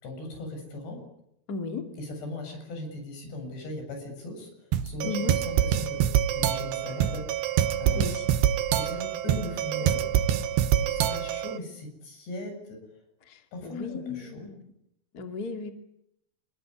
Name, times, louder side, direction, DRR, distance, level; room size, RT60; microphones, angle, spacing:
voice 1, 0.0-1.0 2.0-8.2 8.8-10.0 10.8-13.0 13.5-14.5, left 2 dB, 85° left, 4 dB, 9.2 m, -39 dB
voice 2, 1.5-1.9 5.0-5.3 8.0-8.2 13.6-14.6 15.1-15.7, left 4 dB, 30° left, 5 dB, 2.4 m, -34 dB
sound 1, 4.7-11.6, right 10 dB, 90° right, 3.4 m, -26 dB
29.0 x 20.5 x 9.8 m, 0.79 s
omnidirectional pair, 4.7 m